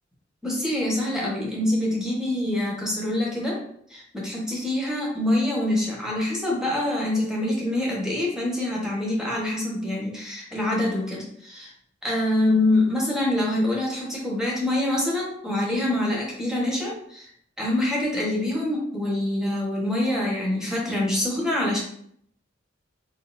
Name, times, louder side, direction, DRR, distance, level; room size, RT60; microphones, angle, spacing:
voice 1, 0.4-11.7 12.0-17.3 17.6-21.8, left 1 dB, 5° right, -4 dB, 1.3 m, -25 dB
4.5 x 3.9 x 2.7 m, 0.66 s
head